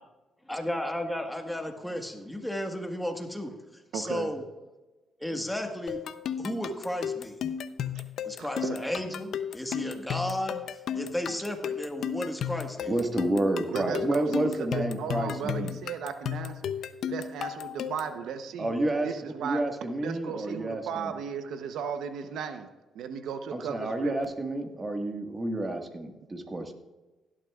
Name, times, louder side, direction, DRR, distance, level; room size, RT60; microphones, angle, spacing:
voice 1, 0.5-3.5 3.9-4.4 5.2-6.0 6.4-7.4 8.2-12.9, left 1 dB, 5° left, 4 dB, 1.5 m, -33 dB
voice 2, 3.9-4.3 7.9-8.0 8.4-8.8 13.7-16.7 17.1-18.7 19.0-19.6 20.0-22.7 22.9-24.1, right 7 dB, 80° right, 8 dB, 0.8 m, -36 dB
sound 1, 5.9-18.2, left 9 dB, 70° left, 0.6 m, -34 dB
voice 3, 12.9-15.8 18.6-21.1 23.5-26.7, right 1 dB, 25° right, 4 dB, 1.6 m, -30 dB
16.5 x 11.5 x 2.4 m, 1.1 s
cardioid pair, 90°, 0 cm